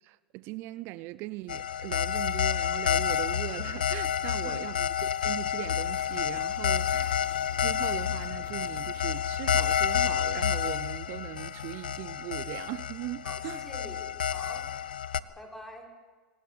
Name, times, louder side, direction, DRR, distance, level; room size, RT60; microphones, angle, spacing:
voice 1, 0.0-7.2 7.5-13.6, right 18 dB, 50° right, 0.6 m, -39 dB
sound 1, 1.5-15.2, left 9 dB, 85° left, 0.8 m, -29 dB
voice 2, 4.2-4.6 13.2-14.7 15.0-15.9, left 1 dB, 5° left, 6.2 m, -46 dB
sound 2, 4.9-5.0 5.4-5.7 6.0-6.4 6.9-7.2 7.5-8.8 9.2-9.4 9.8-10.8, left 10 dB, 40° left, 2.5 m, -54 dB
sound 3, 5.3-10.8, left 5 dB, 65° left, 5.5 m, -53 dB
25.5 x 18.5 x 8.8 m
hypercardioid pair, 95°, 5 cm